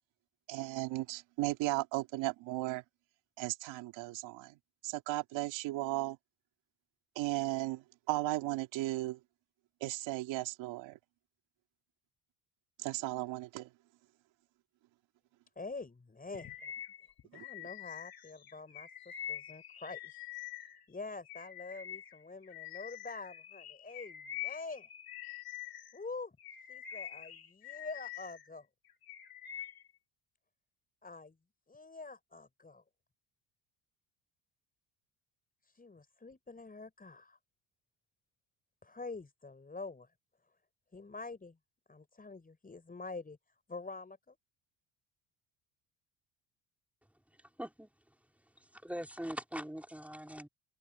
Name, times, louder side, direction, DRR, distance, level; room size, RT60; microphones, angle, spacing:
voice 1, 0.5-2.8 3.4-4.5 4.8-6.2 7.2-9.2 9.8-11.0 12.8-13.7 17.3-17.4, right 17 dB, 80° right, 2.2 m, -35 dB
voice 2, 15.6-16.7 17.3-20.2 20.9-24.9 25.9-26.4 26.7-28.7 31.0-31.4 31.7-32.8 35.6-37.4 38.8-40.1 40.9-41.6 41.9-43.4 43.7-44.4, left 3 dB, 20° left, 5.7 m, -46 dB
Bird vocalization bird call bird song, 16.3-20.9 21.3-26.0 26.4-28.5 28.8-29.9, left 11 dB, 50° left, 3.1 m, -45 dB
voice 3, 47.6-47.9 48.6-50.5, equal, 5° right, 3.9 m, -42 dB
open air
cardioid pair, 105°, 45 cm